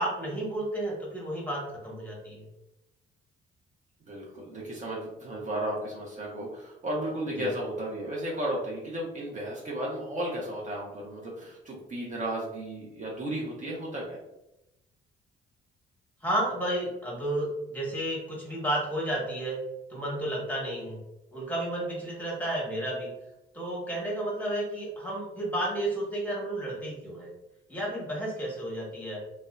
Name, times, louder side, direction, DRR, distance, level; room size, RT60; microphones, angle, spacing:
voice 1, 0.0-2.5 7.4-7.5 16.2-19.6 19.9-21.0 21.3-23.1 23.5-27.3 27.7-29.2, right 1 dB, 10° left, -4 dB, 1.0 m, -32 dB
voice 2, 4.1-14.2, right 1 dB, 40° right, -4 dB, 0.6 m, -34 dB
2.6 x 2.1 x 2.3 m, 0.91 s
cardioid pair, 90°, 20 cm